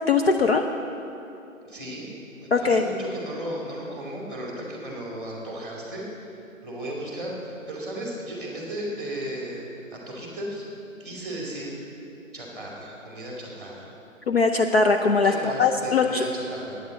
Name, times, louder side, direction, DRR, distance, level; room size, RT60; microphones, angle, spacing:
voice 1, 0.1-0.6 2.5-2.8 14.3-16.2, left 4 dB, 50° left, 4 dB, 0.6 m, -21 dB
voice 2, 1.6-2.1 2.4-10.7 11.0-11.8 12.3-13.9 15.2-16.8, right 1 dB, ahead, -3 dB, 1.9 m, -35 dB
9.3 x 9.2 x 8.4 m, 2.8 s
figure-of-eight pair, 160°, 41 cm